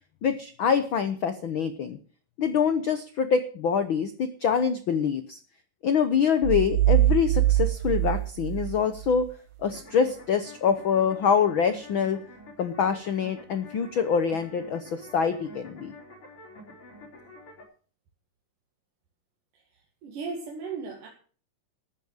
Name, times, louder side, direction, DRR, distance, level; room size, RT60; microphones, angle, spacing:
voice 1, 0.2-2.0 2.4-5.4 5.8-9.3 9.6-12.2 12.6-15.9, left 6 dB, 80° left, 9 dB, 1.1 m, -25 dB
sound 1, 6.4-9.2, right 14 dB, 70° right, 2.2 m, -23 dB
sound 2, 9.7-17.6, left 1 dB, 40° left, 4.8 m, -48 dB
voice 2, 19.5-21.1, right 4 dB, 90° right, 1 dB, 3.6 m, -37 dB
13.0 x 9.5 x 6.6 m, 0.42 s
omnidirectional pair, 3.7 m